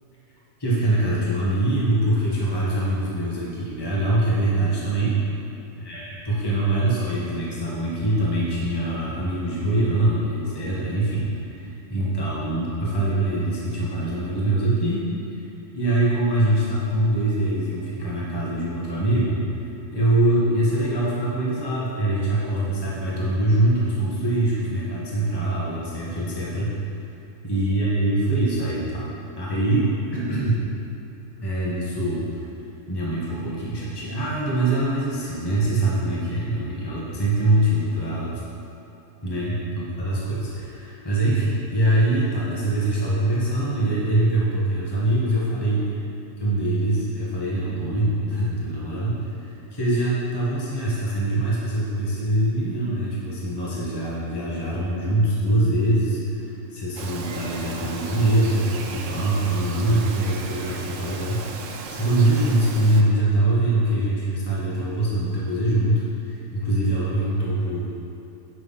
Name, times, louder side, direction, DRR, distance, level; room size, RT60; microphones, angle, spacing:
voice 1, 0.6-5.2 5.8-15.5 15.7-26.8 27.4-30.6 31.4-32.5 32.9-38.4 39.2-45.9 46.4-67.8, right 1 dB, 20° left, -7 dB, 1.6 m, -23 dB
Bird vocalization bird call bird song, 57.0-63.0, right 4 dB, 75° right, 1.1 m, -36 dB
8.6 x 6.2 x 5.6 m, 2.8 s
omnidirectional pair, 1.4 m